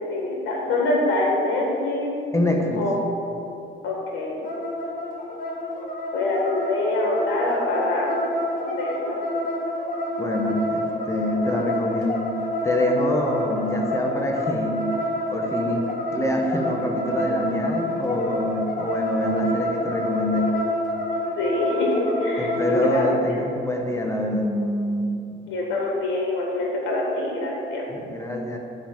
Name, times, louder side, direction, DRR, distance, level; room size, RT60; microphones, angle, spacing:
voice 1, 0.0-2.1 2.8-3.2 3.8-4.4 6.1-8.1 8.7-9.2 21.4-23.1 25.5-27.8, left 2 dB, 75° left, -2 dB, 1.9 m, -25 dB
voice 2, 2.3-2.9 10.2-12.3 12.6-14.8 15.3-20.5 22.4-25.5 27.9-28.6, left 1 dB, 15° left, 1 dB, 1.5 m, -25 dB
sound 1, 4.4-23.1, left 1 dB, 45° left, 2.0 m, -28 dB
9.9 x 4.7 x 7.4 m, 2.7 s
cardioid pair, 90°, 20 cm